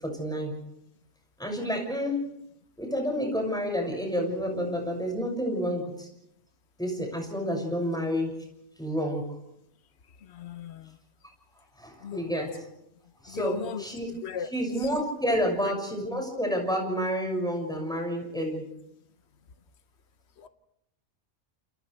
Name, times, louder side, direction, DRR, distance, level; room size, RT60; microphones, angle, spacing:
voice 1, 0.0-0.5 1.4-2.2 2.8-6.1 6.8-8.3 8.8-9.3 11.8-12.7 13.2-14.1 14.4-18.7, equal, 5° left, 6.5 m, -29 dB
voice 2, 10.4-10.8 12.0-12.2 13.4-13.5 14.2-14.5, left 8 dB, 65° left, 1.2 m, -35 dB
29.0 x 29.0 x 3.4 m
omnidirectional pair, 1.2 m